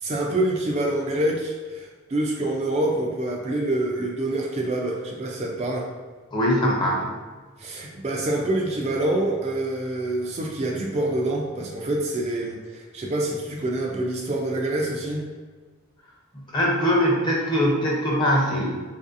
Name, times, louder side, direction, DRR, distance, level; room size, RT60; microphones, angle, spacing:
voice 1, 0.0-5.9 7.6-15.2, right 1 dB, 30° right, -1 dB, 0.3 m, -26 dB
voice 2, 6.3-7.1 16.3-18.8, equal, 20° left, -3 dB, 0.6 m, -22 dB
4.0 x 2.6 x 2.5 m, 1.4 s
head